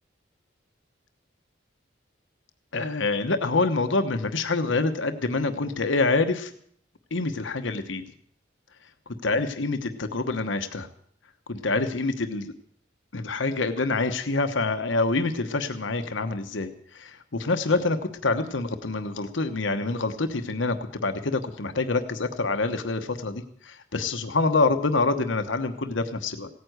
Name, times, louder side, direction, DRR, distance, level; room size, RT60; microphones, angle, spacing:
voice 1, 2.7-6.5 7.1-8.0 9.2-10.9 11.5-12.5 13.1-18.0 18.2-26.5, left 3 dB, 75° left, 8 dB, 1.1 m, -26 dB
17.0 x 9.5 x 8.0 m, 0.63 s
head